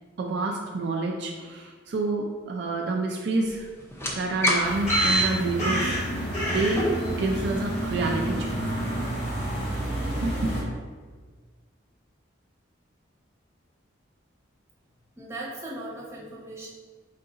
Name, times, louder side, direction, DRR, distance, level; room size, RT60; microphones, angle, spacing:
voice 1, 0.2-3.7 4.1-5.9 6.5-6.8 7.2-8.7 10.2-10.6, right 3 dB, 55° right, 0 dB, 0.4 m, -28 dB
sound 1, 3.9-9.1, right 1 dB, 15° left, 0.5 m, -28 dB
sound 2, 4.6-10.6, right 1 dB, 30° left, 1.1 m, -30 dB
voice 2, 15.2-16.7, right 1 dB, 15° right, -6 dB, 0.8 m, -38 dB
4.7 x 2.5 x 3.8 m, 1.5 s
head